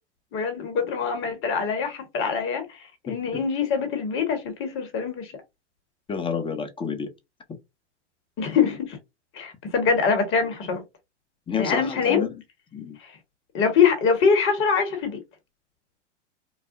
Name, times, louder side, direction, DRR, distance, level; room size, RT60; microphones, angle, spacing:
voice 1, 0.3-5.3 8.4-9.0 9.3-10.8 11.6-12.3 13.0-13.1 13.5-15.2, left 6 dB, 35° left, 1.4 m, -24 dB
voice 2, 6.1-7.1 11.5-12.3 12.7-13.0, left 6 dB, 15° left, 0.8 m, -29 dB
4.7 x 2.0 x 2.6 m
hypercardioid pair, 100°, 36 cm